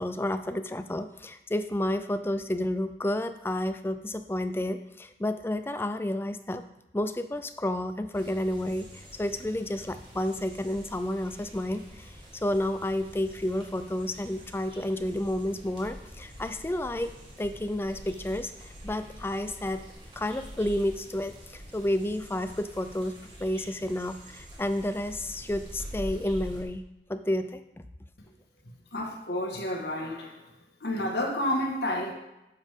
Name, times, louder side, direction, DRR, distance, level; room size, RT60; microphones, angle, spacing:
voice 1, 0.0-6.6 6.9-17.1 17.4-18.5 18.8-19.8 20.2-26.8 27.1-27.6, left 1 dB, 15° left, 10 dB, 0.4 m, -31 dB
sound 1, 8.1-26.6, equal, 25° right, 1.9 m, -46 dB
voice 2, 28.6-30.5 30.8-32.1, left 1 dB, 65° left, 1 dB, 1.6 m, -30 dB
8.9 x 7.2 x 3.7 m, 0.92 s
head